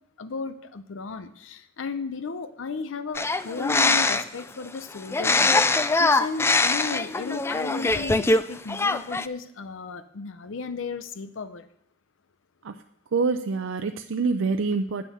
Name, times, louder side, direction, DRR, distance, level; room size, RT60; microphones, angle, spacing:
voice 1, 0.2-11.7, left 4 dB, 80° left, 11 dB, 0.6 m, -35 dB
sound 1, 3.1-4.4 5.1-8.4 8.7-9.3, left 3 dB, 15° left, 0.3 m, -22 dB
voice 2, 13.1-15.0, right 4 dB, 85° right, 7 dB, 0.5 m, -26 dB
9.2 x 6.3 x 7.7 m, 0.75 s
head